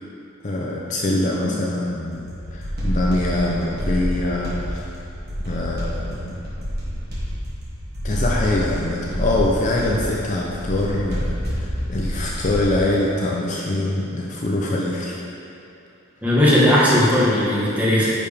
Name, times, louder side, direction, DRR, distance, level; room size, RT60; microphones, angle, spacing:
voice 1, 0.4-4.8 5.5-6.3 8.0-15.2, left 1 dB, 35° left, -3 dB, 0.6 m, -24 dB
sound 1, 2.1-12.8, equal, 50° right, 1.7 m, -28 dB
voice 2, 16.2-18.1, left 1 dB, 10° right, -8 dB, 1.4 m, -17 dB
10.0 x 4.7 x 3.4 m, 2.7 s
head